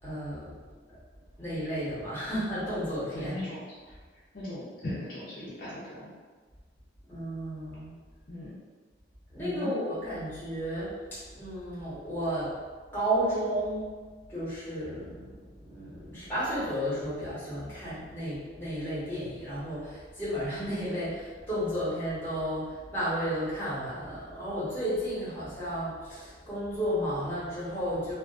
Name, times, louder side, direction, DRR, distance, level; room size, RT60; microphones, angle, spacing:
voice 1, 0.0-0.6 0.9-1.0 1.4-3.4 7.1-7.9 9.3-12.6 12.9-13.9 14.3-28.1, equal, 10° left, -11 dB, 1.0 m, -33 dB
voice 2, 3.1-4.0 4.3-6.1 8.3-8.6 9.4-9.7, left 1 dB, 50° left, -9 dB, 0.5 m, -38 dB
2.4 x 2.3 x 2.4 m, 1.4 s
head